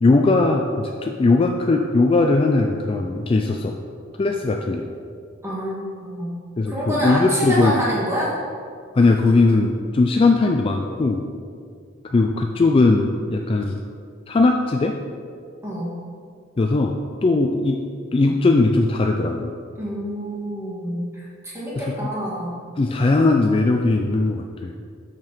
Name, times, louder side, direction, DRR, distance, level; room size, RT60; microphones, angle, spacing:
voice 1, 0.0-3.8 4.2-4.8 6.6-7.8 8.9-11.2 12.1-13.8 14.3-15.0 16.6-17.8 18.1-19.5 21.8-22.1 22.8-24.7, left 3 dB, 25° left, 3 dB, 0.3 m, -19 dB
voice 2, 5.4-6.3 6.7-8.3 15.6-15.9 19.8-22.5, equal, 15° right, -7 dB, 2.0 m, -27 dB
6.7 x 6.0 x 4.5 m, 2.2 s
head